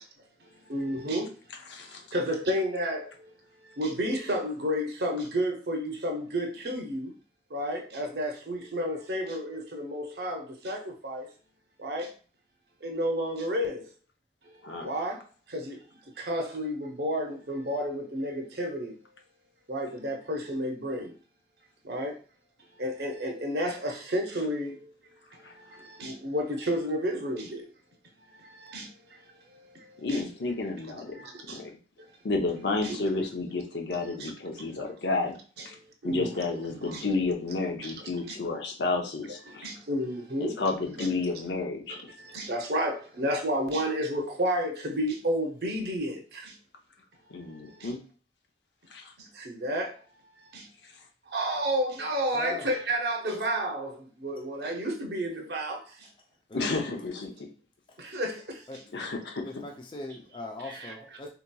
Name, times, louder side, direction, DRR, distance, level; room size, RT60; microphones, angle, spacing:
voice 1, 0.7-1.3 2.1-3.1 3.8-7.1 7.5-11.3 11.8-12.1 12.8-13.9 14.8-15.2 15.5-15.8 16.2-18.9 19.7-21.1 21.8-22.2 22.8-24.8 25.7-27.6 28.4-28.9 30.1-30.2 30.8-31.6 32.8-33.2 34.0-34.9 35.6-35.7 36.0-37.1 37.8-37.9 38.3-38.4 39.5-40.6 41.0-41.1 42.2-46.5 47.8-47.9 49.4-49.9 50.5-50.7 51.3-55.8 58.0-58.6 60.6-60.9, equal, 70° right, 0.7 m, -31 dB
voice 2, 1.7-2.0 14.6-14.9 25.4-25.5 30.0-31.1 31.5-31.7 32.2-35.4 35.7-35.8 36.0-39.7 40.4-42.0 47.3-48.0 48.9-49.0 56.5-57.5 58.9-59.4, left 3 dB, 85° left, 0.6 m, -31 dB
voice 3, 52.3-52.7 56.0-56.1 56.5-56.9 57.9-58.0 58.7-58.8 59.4-61.3, left 3 dB, 30° left, 0.4 m, -40 dB
3.8 x 2.8 x 2.2 m
head